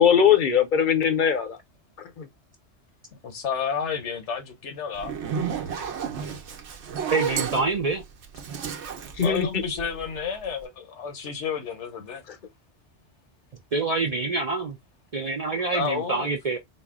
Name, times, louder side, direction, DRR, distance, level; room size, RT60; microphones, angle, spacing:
voice 1, 0.0-1.6 2.0-2.3 9.1-9.6 12.3-12.4, left 8 dB, 50° left, 0.8 m, -21 dB
voice 2, 3.2-5.2 9.2-12.2 15.7-16.3, left 6 dB, 80° left, 1.2 m, -31 dB
Zipper (clothing), 4.9-10.2, right 7 dB, 75° right, 1.0 m, -32 dB
voice 3, 7.1-8.0 13.7-14.8 15.1-16.6, right 3 dB, 50° right, 0.5 m, -26 dB
4.3 x 2.0 x 3.5 m
omnidirectional pair, 1.2 m